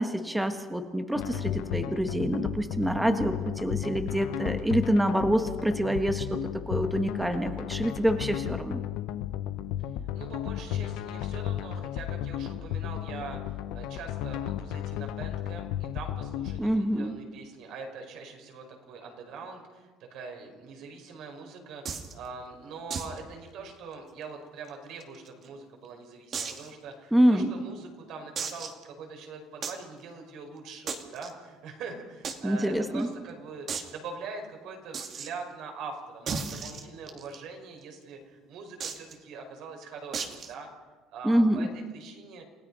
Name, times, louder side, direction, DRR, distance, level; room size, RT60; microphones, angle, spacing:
voice 1, 0.0-6.4 6.7-8.8 16.6-17.2 27.1-27.5 32.4-33.1 41.2-41.7, equal, 5° right, 6 dB, 1.5 m, -26 dB
sound 1, 1.2-16.6, left 11 dB, 75° left, 1.0 m, -34 dB
voice 2, 10.1-33.7 33.9-40.7 41.1-41.7 41.9-42.4, right 4 dB, 65° right, 3 dB, 5.0 m, -43 dB
sound 2, 21.9-22.1 22.9-23.2 23.5-23.6 23.9-24.0 24.7-25.5 26.3-26.7 27.3-27.4 28.4-28.8 29.6-29.8 30.9-31.3 32.2-32.4 32.6-32.7 33.0-33.1 33.7-33.9 34.9-35.3 36.3-37.4 38.8-39.1 40.1-40.5, right 5 dB, 40° right, 2.3 m, -35 dB
29.0 x 16.5 x 5.6 m, 1.4 s
cardioid pair, 130°, 0 cm